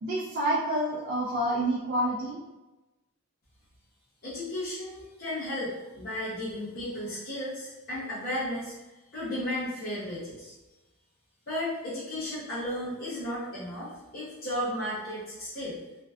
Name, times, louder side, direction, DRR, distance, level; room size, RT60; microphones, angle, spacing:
voice 1, 0.0-2.4, right 1 dB, 50° right, -6 dB, 0.4 m, -28 dB
voice 2, 4.2-8.7 9.1-10.5 11.5-15.8, left 1 dB, 45° left, -11 dB, 0.6 m, -34 dB
2.5 x 2.2 x 2.3 m, 1.1 s
head